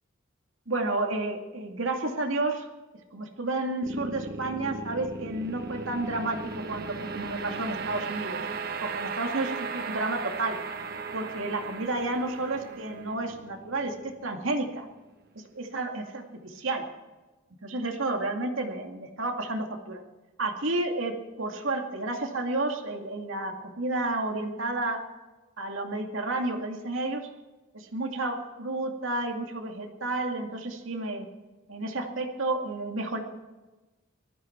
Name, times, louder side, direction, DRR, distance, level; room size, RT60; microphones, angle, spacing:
voice 1, 0.7-2.7 3.1-8.4 8.8-10.6 11.1-14.8 15.3-16.8 17.6-20.0 20.4-25.0 25.6-27.3 27.7-31.3 31.7-33.2, right 2 dB, 80° right, 3 dB, 2.3 m, -31 dB
sound 1, 3.8-15.0, right 4 dB, 45° right, 1.2 m, -37 dB
20.0 x 14.0 x 4.6 m, 1.1 s
head